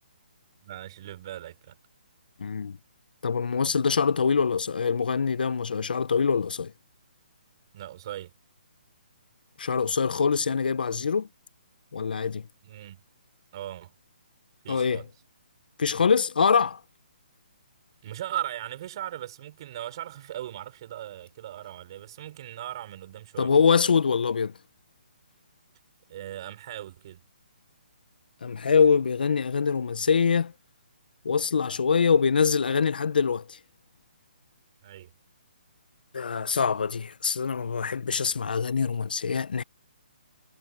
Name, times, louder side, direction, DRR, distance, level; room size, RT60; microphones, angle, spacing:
voice 1, 0.6-1.8 7.7-8.3 12.6-13.0 13.5-13.9 14.6-15.1 18.0-23.5 26.1-27.2 34.8-35.1, right 12 dB, 30° right, 6.2 m, -38 dB
voice 2, 2.4-2.8 3.2-6.7 9.6-11.3 11.9-12.4 14.7-15.0 15.8-16.8 23.4-24.5 28.4-30.5 31.2-33.6 36.1-39.6, left 6 dB, 65° left, 0.7 m, -24 dB
hypercardioid pair, 175°, 5 cm